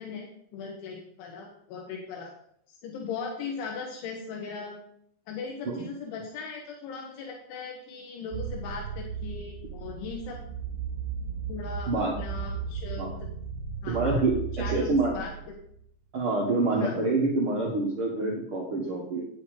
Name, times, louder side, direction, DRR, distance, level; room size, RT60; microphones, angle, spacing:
voice 1, 0.0-2.3 2.7-4.8 5.3-10.4 11.5-13.3 13.8-14.2 14.6-15.3 16.8-17.1, left 5 dB, 80° left, 0 dB, 3.7 m, -38 dB
sound 1, 8.3-15.8, right 7 dB, 25° right, 5.1 m, -36 dB
voice 2, 13.9-15.1 16.1-19.2, right 3 dB, 75° right, -3 dB, 1.2 m, -27 dB
10.0 x 8.5 x 5.0 m, 0.68 s
omnidirectional pair, 5.4 m